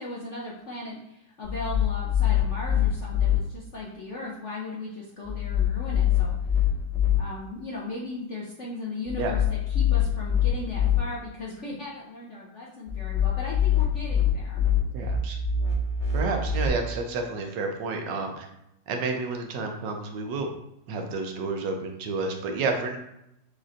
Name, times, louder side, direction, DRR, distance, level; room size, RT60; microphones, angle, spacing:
voice 1, 0.0-6.6 7.2-14.7, left 2 dB, 60° left, -4 dB, 0.8 m, -37 dB
sound 1, 1.4-3.4 5.2-7.2 9.1-11.0 12.9-16.7, left 8 dB, ahead, 1.1 m, -24 dB
voice 2, 14.9-15.4 16.1-18.5 18.9-20.5 20.9-23.0, right 3 dB, 75° right, 3 dB, 1.3 m, -30 dB
6.5 x 3.0 x 2.5 m, 0.82 s
omnidirectional pair, 2.0 m